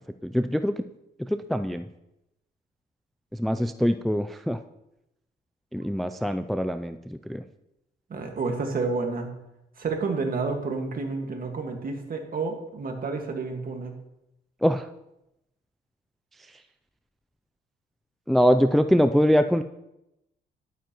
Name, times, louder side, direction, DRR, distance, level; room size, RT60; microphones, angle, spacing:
voice 1, 0.2-0.8 1.3-1.8 3.4-4.6 5.7-7.4 14.6-14.9 18.3-19.6, equal, ahead, 9 dB, 0.4 m, -23 dB
voice 2, 8.1-9.3 9.8-14.0, right 4 dB, 45° right, 3 dB, 1.8 m, -30 dB
11.5 x 9.2 x 3.0 m, 0.88 s
cardioid pair, 90°, 20 cm